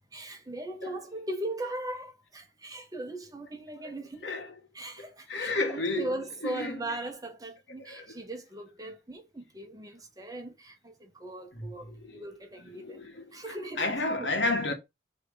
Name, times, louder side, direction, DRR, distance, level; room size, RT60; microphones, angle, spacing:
voice 1, 0.1-4.3 4.7-13.9 14.2-14.3, right 1 dB, 20° right, 1.2 m, -39 dB
voice 2, 4.2-4.5 5.0-6.1 6.4-6.8 7.8-8.2 8.8-8.9 11.5-12.2 12.7-14.7, left 2 dB, 85° left, 1.7 m, -32 dB
6.3 x 3.5 x 4.8 m
head